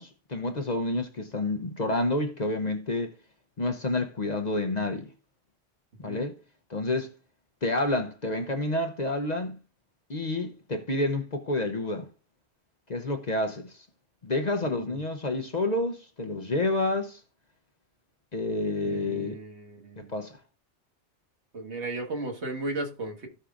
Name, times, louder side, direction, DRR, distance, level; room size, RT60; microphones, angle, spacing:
voice 1, 0.0-3.1 3.6-5.1 6.0-6.3 6.7-7.1 7.6-9.6 10.1-12.1 12.9-13.7 14.2-17.2 18.3-19.4 20.0-20.4, left 2 dB, 40° left, 0.9 m, -29 dB
voice 2, 14.6-15.0 18.8-20.1 21.5-23.3, right 2 dB, 70° right, 1.8 m, -35 dB
16.0 x 5.5 x 2.5 m
omnidirectional pair, 1.2 m